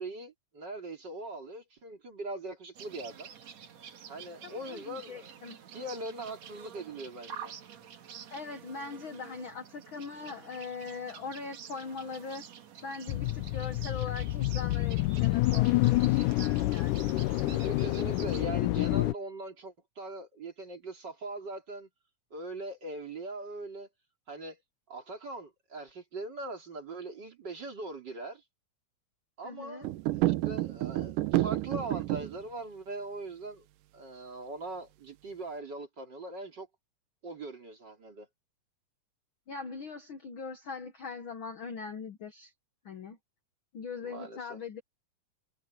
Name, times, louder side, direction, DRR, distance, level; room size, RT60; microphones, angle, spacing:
voice 1, 0.0-3.3 4.1-5.3 5.7-7.6 17.3-21.9 22.3-23.9 24.3-24.6 24.9-28.4 29.4-33.7 33.9-36.7 37.2-38.3 44.0-44.6, right 2 dB, 35° right, 3.4 m, -41 dB
sound 1, 2.7-18.5, right 8 dB, 60° right, 2.8 m, -48 dB
voice 2, 4.4-5.6 8.3-12.4 12.8-17.1 29.4-29.9 39.5-42.5 42.8-43.2 43.7-44.8, left 5 dB, 55° left, 1.5 m, -41 dB
sound 2, 13.1-19.1, left 18 dB, 80° left, 2.2 m, -28 dB
sound 3, 29.8-32.4, right 17 dB, 85° right, 2.5 m, -29 dB
omnidirectional pair, 3.7 m